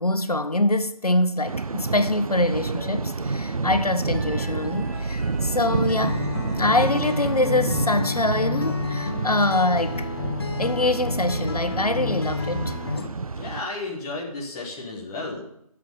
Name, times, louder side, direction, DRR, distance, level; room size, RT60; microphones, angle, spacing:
voice 1, 0.0-6.2 6.6-10.1 10.6-12.7, left 2 dB, 85° left, 1.2 m, -24 dB
Thunder, 1.5-13.6, right 4 dB, 70° right, 0.6 m, -29 dB
sound 1, 2.4-2.8 3.1-8.1, right 2 dB, 25° right, 2.4 m, -36 dB
Acoustic guitar, 5.9-13.1, left 4 dB, 40° left, 1.0 m, -30 dB
voice 2, 13.3-15.4, left 2 dB, 5° left, 0.7 m, -33 dB
10.5 x 7.4 x 9.2 m
figure-of-eight pair, 160°, 19 cm